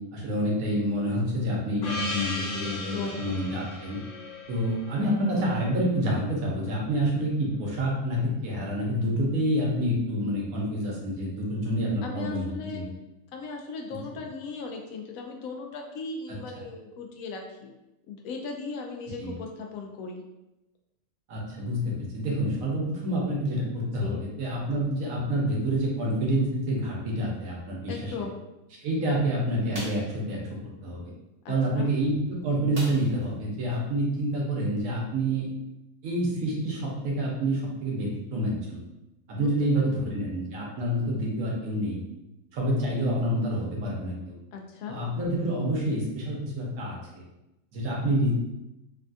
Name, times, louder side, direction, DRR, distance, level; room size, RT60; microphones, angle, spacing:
voice 1, 0.1-4.0 4.5-12.8 14.1-14.2 19.2-19.3 21.3-28.3 28.8-30.4 30.8-31.1 31.5-35.5 36.0-38.8 39.3-42.0 42.5-44.3 44.9-47.2 47.7-48.3, right 1 dB, 85° right, -2 dB, 1.2 m, -28 dB
Gong, 1.8-6.6, left 2 dB, 65° left, 0.5 m, -36 dB
voice 2, 2.7-3.2 12.0-12.8 13.3-17.7 18.1-20.2 24.0-24.2 27.9-28.4 31.4-31.8 39.4-39.5 40.1-40.2 44.5-45.0, left 4 dB, 85° left, 2 dB, 1.0 m, -37 dB
sound 1, 29.7-30.1 32.7-33.3 33.7-33.8 34.2-34.4, right 1 dB, 55° right, 1.1 m, -39 dB
3.3 x 2.3 x 2.5 m, 0.93 s
omnidirectional pair, 1.4 m